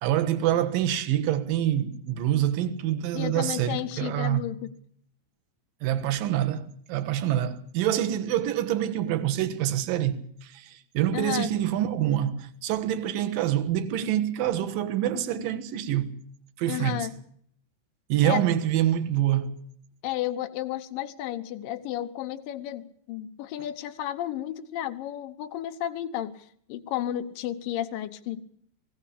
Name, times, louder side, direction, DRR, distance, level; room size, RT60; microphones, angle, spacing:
voice 1, 0.0-4.5 5.8-16.2 16.6-17.1 18.1-19.6, right 11 dB, 65° right, 2.4 m, -26 dB
voice 2, 3.1-4.7 11.1-11.5 16.7-17.1 18.2-18.4 20.0-28.4, left 12 dB, 75° left, 2.0 m, -32 dB
20.5 x 17.0 x 8.6 m
omnidirectional pair, 5.5 m